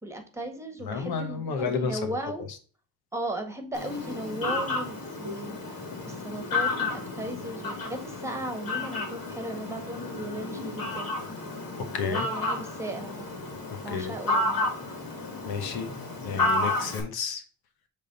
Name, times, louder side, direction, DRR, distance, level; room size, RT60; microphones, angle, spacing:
voice 1, 0.0-2.4 3.1-11.1 12.0-13.3 13.8-14.6, right 1 dB, 10° right, 5 dB, 1.7 m, -36 dB
voice 2, 0.9-2.2 11.9-12.3 13.7-14.2 15.4-15.9 16.2-17.4, left 6 dB, 85° left, 8 dB, 1.1 m, -31 dB
Fowl, 3.7-17.0, left 2 dB, 65° left, 2.6 m, -32 dB
6.7 x 3.6 x 3.9 m, 0.38 s
cardioid pair, 75°, 36 cm